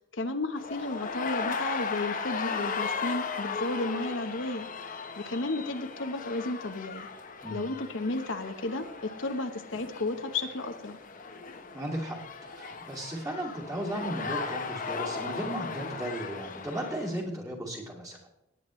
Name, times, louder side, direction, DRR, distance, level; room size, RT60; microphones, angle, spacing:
voice 1, 0.1-4.7 5.2-7.1 7.5-11.0, left 2 dB, 65° left, 7 dB, 1.0 m, -33 dB
sound 1, 0.6-17.1, left 5 dB, 40° left, 1.0 m, -37 dB
voice 2, 11.7-12.2 12.5-18.2, right 1 dB, 15° right, -2 dB, 2.4 m, -35 dB
18.0 x 9.3 x 3.1 m, 0.83 s
head